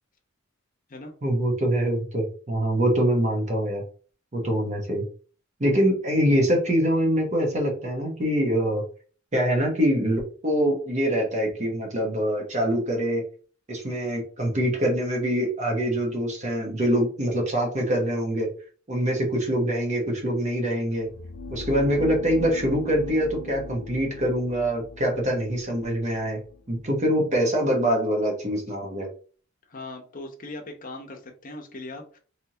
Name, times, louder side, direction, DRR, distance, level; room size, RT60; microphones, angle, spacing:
voice 1, 1.2-3.8 4.3-5.0 5.6-8.8 9.3-13.2 13.7-18.5 18.9-21.1 21.5-26.4 26.7-29.1, equal, 35° right, 0 dB, 0.9 m, -24 dB
sound 1, 20.9-26.8, left 3 dB, 80° left, 0.6 m, -39 dB
voice 2, 29.7-32.2, left 2 dB, 40° left, 2 dB, 0.7 m, -39 dB
3.3 x 2.9 x 2.8 m, 0.41 s
head